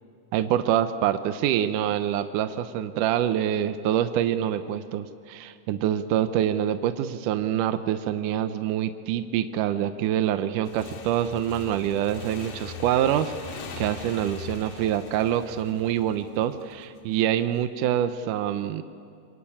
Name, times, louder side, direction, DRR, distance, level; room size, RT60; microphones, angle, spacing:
voice 1, 0.3-18.8, right 10 dB, 75° right, 10 dB, 2.2 m, -26 dB
Motorcycle / Engine, 10.6-17.0, left 5 dB, 75° left, 3.9 m, -41 dB
27.0 x 22.5 x 8.7 m, 2.4 s
omnidirectional pair, 4.0 m